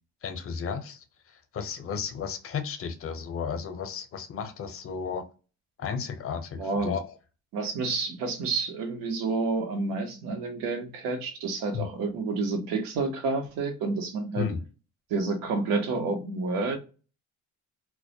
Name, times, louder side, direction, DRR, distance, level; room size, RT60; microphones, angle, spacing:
voice 1, 0.2-1.0 1.3-5.2 5.8-7.1 11.7-11.9 14.4-14.6, left 6 dB, 40° left, 0.6 m, -33 dB
voice 2, 6.6-6.9 7.5-14.5 15.1-16.8, right 3 dB, 85° right, 0.8 m, -29 dB
2.2 x 2.1 x 2.7 m
cardioid pair, 110°, 34 cm